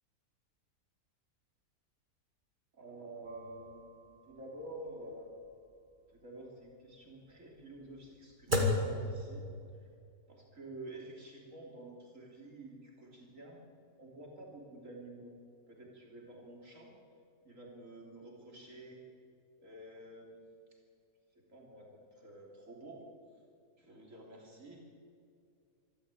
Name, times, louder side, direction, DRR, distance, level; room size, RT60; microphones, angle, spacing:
voice 1, 2.7-5.3 6.1-9.5 10.3-13.6 14.0-15.3 15.7-16.9 17.4-19.0 19.6-20.4 21.5-23.0 23.8-24.8, right 1 dB, 55° right, -1 dB, 3.7 m, -50 dB
sound 1, 3.2-9.9, left 1 dB, 30° right, 2.5 m, -37 dB
24.0 x 13.0 x 8.5 m, 2.4 s
omnidirectional pair, 1.6 m